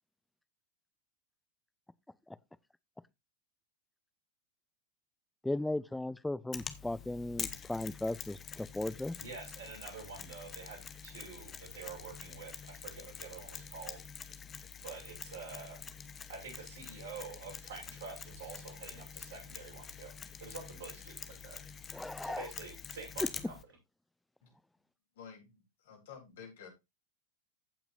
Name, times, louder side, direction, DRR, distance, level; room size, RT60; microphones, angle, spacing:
voice 1, 5.4-9.2 21.9-22.5, left 2 dB, 5° left, 0.5 m, -36 dB
Mechanisms, 6.5-23.6, left 7 dB, 20° left, 1.1 m, -46 dB
voice 2, 9.2-14.0 14.8-15.8 16.3-20.1 20.4-21.6 22.2-23.5, right 4 dB, 60° right, 6.1 m, -47 dB
voice 3, 25.2-26.7, left 7 dB, 55° left, 3.6 m, -51 dB
15.5 x 5.9 x 2.6 m
figure-of-eight pair, 90°, 0 cm